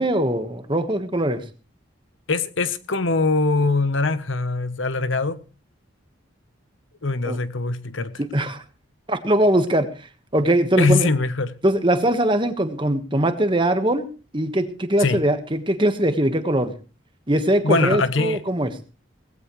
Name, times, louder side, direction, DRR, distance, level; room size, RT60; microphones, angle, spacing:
voice 1, 0.0-1.4 7.2-7.4 8.3-8.6 9.1-9.9 10.3-11.1 11.6-14.1 14.3-16.7 17.3-18.7, right 1 dB, 25° right, 1.4 m, -21 dB
voice 2, 2.3-5.4 7.0-8.2 10.8-11.6 15.0-15.2 17.6-18.4, left 3 dB, 75° left, 1.0 m, -22 dB
18.0 x 15.5 x 3.2 m
head